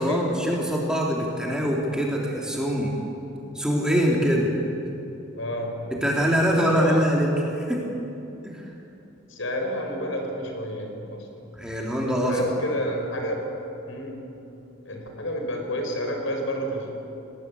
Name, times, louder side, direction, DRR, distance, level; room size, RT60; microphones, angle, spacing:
voice 1, 0.0-2.9 3.5-4.5 5.9-7.3 7.5-7.8 8.4-8.7 11.5-12.4, equal, 5° right, -2 dB, 3.3 m, -24 dB
voice 2, 5.4-5.9 6.5-7.1 9.3-11.5 12.3-13.6 13.9-14.3 14.8-16.9, equal, 70° left, 3 dB, 5.1 m, -30 dB
29.0 x 19.5 x 8.5 m, 3.0 s
head